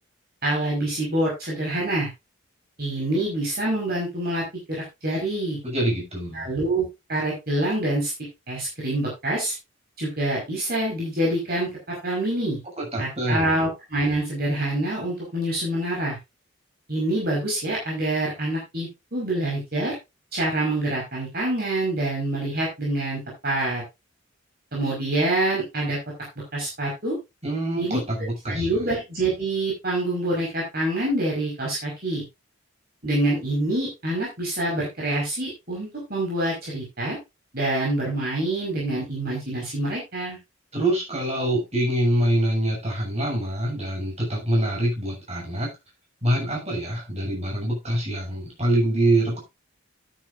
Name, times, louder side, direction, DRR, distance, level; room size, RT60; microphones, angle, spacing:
voice 1, 0.4-2.1 2.8-5.6 6.3-8.1 8.5-9.5 10.0-12.6 13.0-16.2 16.9-19.9 20.3-23.8 24.7-26.0 26.5-27.2 27.8-28.0 28.5-32.2 33.0-37.2 37.5-40.4, right 1 dB, 45° right, -3 dB, 5.1 m, -26 dB
voice 2, 5.6-6.5 12.8-13.6 27.4-28.7 40.7-45.7 46.2-49.4, right 1 dB, 30° right, -1 dB, 7.0 m, -25 dB
12.0 x 10.0 x 2.6 m, 0.24 s
head